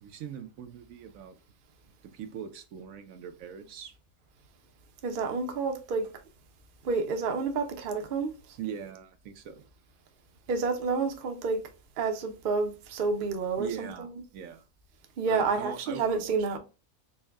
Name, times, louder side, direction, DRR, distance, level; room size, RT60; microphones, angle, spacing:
voice 1, 0.0-1.4 2.0-3.9 8.6-9.7 13.6-14.6 15.3-16.6, right 8 dB, 80° right, 1.0 m, -41 dB
voice 2, 5.0-6.1 6.8-8.3 10.5-11.6 12.0-14.1 15.2-16.6, right 4 dB, 50° right, 0.7 m, -29 dB
4.4 x 2.1 x 3.4 m
omnidirectional pair, 1.4 m